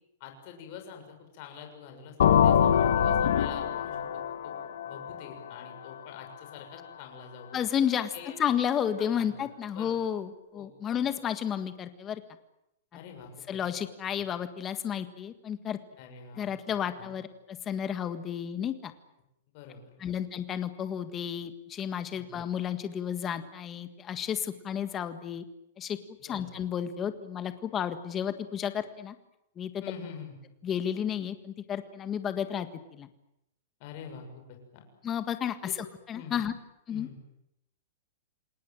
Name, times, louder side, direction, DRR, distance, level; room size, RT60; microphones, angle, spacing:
voice 1, 0.2-4.6 4.8-7.6 8.1-8.4 9.0-9.5 9.7-10.0 10.5-11.1 12.9-13.6 16.0-16.5 17.0-17.1 19.5-19.9 22.1-22.3 26.3-26.6 29.8-30.3 33.8-34.8 35.6-35.7 36.1-36.4 36.9-37.2, left 7 dB, 35° left, 4 dB, 6.7 m, -46 dB
sound 1, 2.2-5.9, left 8 dB, 70° left, 2.0 m, -24 dB
voice 2, 7.5-12.2 13.5-15.8 16.4-18.9 20.0-25.4 25.8-26.0 26.2-29.1 29.6-29.7 30.6-33.1 35.0-35.6 36.1-36.5 36.9-37.1, left 9 dB, 15° left, 10 dB, 1.7 m, -32 dB
28.5 x 19.5 x 9.1 m, 0.86 s
supercardioid pair, 170°, 0 cm